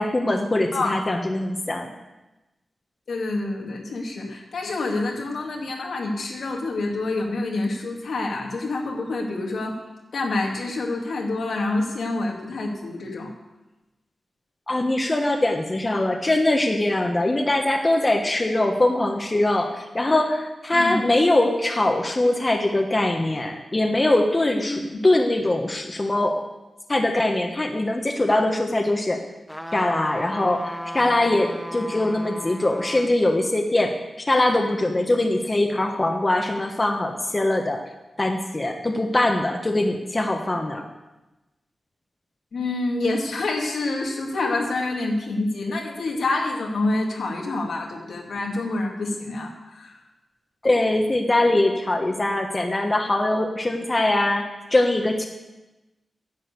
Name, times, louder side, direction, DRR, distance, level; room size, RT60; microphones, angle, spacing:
voice 1, 0.0-1.9 14.7-26.4 26.9-29.2 29.7-33.9 34.3-37.8 38.2-40.9 50.6-55.3, left 1 dB, 25° left, 3 dB, 1.3 m, -22 dB
voice 2, 3.1-9.8 10.1-13.3 20.7-20.9 24.6-24.8 42.5-50.0, left 2 dB, 80° left, 0 dB, 2.2 m, -27 dB
sound 1, 29.5-33.1 33.7-33.8, equal, 5° left, 0.9 m, -35 dB
10.5 x 7.3 x 8.3 m, 1.0 s
wide cardioid pair, 85°, 0 cm